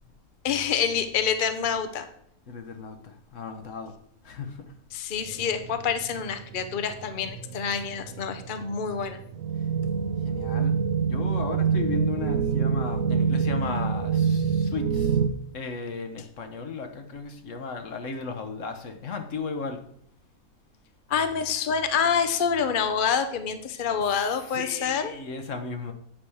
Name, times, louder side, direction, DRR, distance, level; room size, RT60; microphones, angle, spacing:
voice 1, 0.4-2.1 4.9-9.2 21.1-25.1, left 7 dB, 45° left, 0.8 m, -27 dB
voice 2, 2.5-3.9 4.2-4.7 10.2-15.2 15.5-19.8 24.1-25.9, left 4 dB, 60° left, 1.3 m, -35 dB
sound 1, 5.3-15.3, right 6 dB, 60° right, 1.0 m, -27 dB
8.8 x 5.0 x 7.0 m
omnidirectional pair, 1.5 m